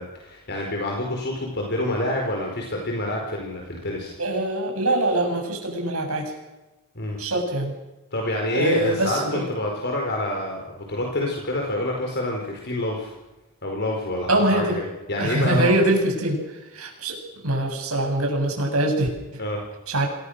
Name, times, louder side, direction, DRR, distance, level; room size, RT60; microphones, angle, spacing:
voice 1, 0.0-4.2 6.9-7.2 8.1-13.1 13.6-15.7 19.4-19.6, left 1 dB, 50° left, 1 dB, 4.6 m, -27 dB
voice 2, 4.2-6.3 7.2-7.7 8.5-9.4 14.3-14.8 15.2-16.4 16.7-17.2 17.4-19.1 19.9-20.1, right 1 dB, 80° right, 2 dB, 8.0 m, -23 dB
27.5 x 21.0 x 6.6 m, 1.1 s
head